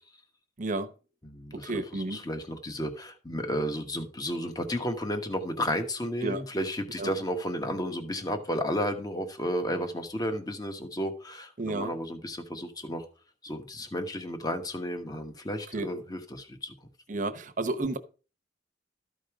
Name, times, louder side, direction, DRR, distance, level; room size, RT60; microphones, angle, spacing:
voice 1, 0.6-0.9 1.5-2.2 6.2-6.4 7.0-7.1 11.6-11.9 15.7-15.9 17.1-18.0, right 2 dB, 45° right, 0.9 m, -31 dB
voice 2, 1.2-13.0 13.4-16.7, equal, 20° left, 1.2 m, -33 dB
13.0 x 5.3 x 4.9 m
head